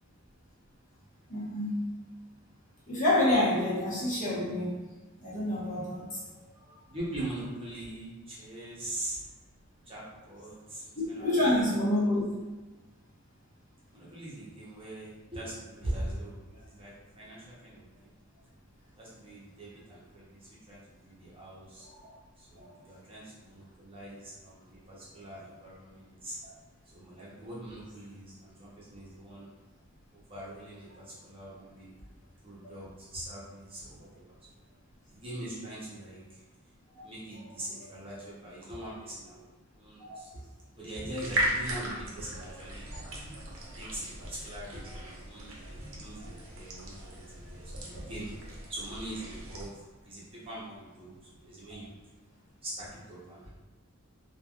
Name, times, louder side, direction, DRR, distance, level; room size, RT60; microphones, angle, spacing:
voice 1, 1.3-1.8 2.9-4.8 5.2-6.5 11.0-12.2 22.6-22.9 40.1-40.2, left 1 dB, 35° left, -8 dB, 0.9 m, -28 dB
voice 2, 6.9-9.2 9.9-11.2 13.9-18.1 19.0-21.8 22.4-26.4 26.9-29.5 30.1-32.0 32.4-34.5 35.1-36.4 37.0-39.4 39.7-40.4 40.7-42.8 43.7-52.0 52.6-53.5, right 1 dB, 25° right, -7 dB, 0.8 m, -42 dB
sound 1, 41.2-49.7, right 1 dB, 70° right, 0.7 m, -37 dB
3.2 x 2.3 x 2.3 m, 1.2 s
head